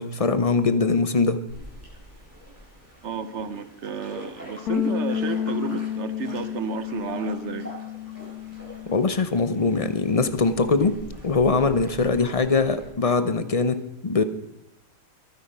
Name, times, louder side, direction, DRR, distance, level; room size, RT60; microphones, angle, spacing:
voice 1, 0.0-1.4 8.9-14.2, left 4 dB, 40° left, 12 dB, 0.5 m, -22 dB
sound 1, 1.5-12.9, equal, 10° right, 8.0 m, -45 dB
voice 2, 3.0-7.7, right 5 dB, 50° right, 12 dB, 1.0 m, -32 dB
sound 2, 4.7-9.2 9.5-10.9, left 9 dB, 65° left, 1.4 m, -31 dB
23.0 x 9.5 x 5.5 m, 0.81 s
omnidirectional pair, 1.8 m